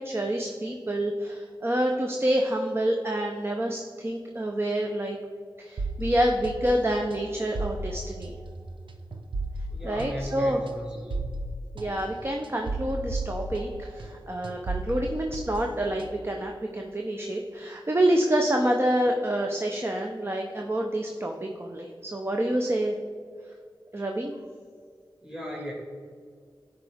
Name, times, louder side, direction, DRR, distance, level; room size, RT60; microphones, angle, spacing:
voice 1, 0.0-5.2 5.6-8.3 9.8-10.6 11.7-23.0 23.9-24.4, right 1 dB, 30° right, 1 dB, 0.7 m, -27 dB
sound 1, 5.8-14.2 14.4-16.4, right 2 dB, 75° right, 0.7 m, -35 dB
voice 2, 9.7-11.3 25.2-25.7, equal, 10° right, -4 dB, 1.7 m, -37 dB
10.0 x 4.7 x 3.5 m, 2.1 s
wide cardioid pair, 65°, 8 cm